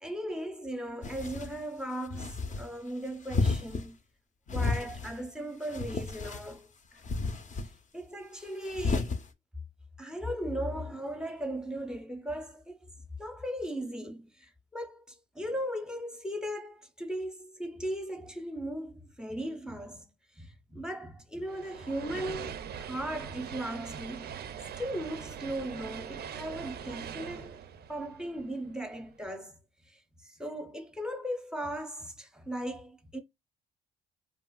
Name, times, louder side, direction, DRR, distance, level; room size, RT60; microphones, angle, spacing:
voice 1, 0.0-4.0 4.5-7.0 7.9-9.2 10.0-12.9 13.2-20.1 20.3-24.4 24.8-27.6 27.9-29.6 30.2-33.2, equal, 5° right, 0.6 m, -37 dB
sound 1, 1.0-1.6 2.1-2.7 3.3-3.9 4.5-5.2 5.6-6.5 7.0-7.7 8.6-9.2, left 3 dB, 40° left, 0.5 m, -32 dB
sound 2, 21.5-28.9, right 8 dB, 55° right, 0.4 m, -42 dB
2.9 x 2.4 x 2.2 m
cardioid pair, 90°, 20 cm